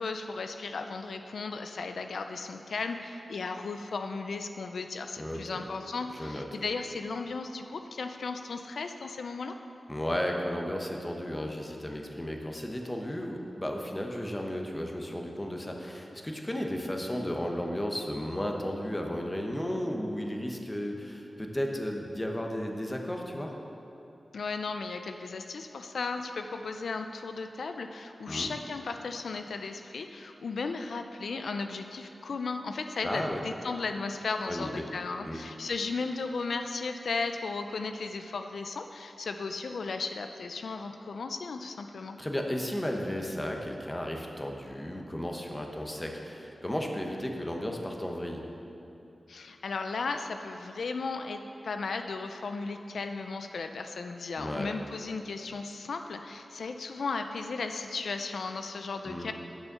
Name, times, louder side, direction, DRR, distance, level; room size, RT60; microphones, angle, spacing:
voice 1, 0.0-9.6 24.3-42.2 49.3-59.3, left 4 dB, 85° left, 6 dB, 0.4 m, -35 dB
voice 2, 5.2-5.6 6.1-6.4 9.9-23.5 28.3-28.5 33.0-33.4 34.4-34.8 35.2-35.4 42.2-48.4 54.4-54.7 59.1-59.3, equal, 15° left, 1 dB, 0.9 m, -34 dB
9.2 x 6.4 x 6.7 m, 3.0 s
wide cardioid pair, 125°, 0 cm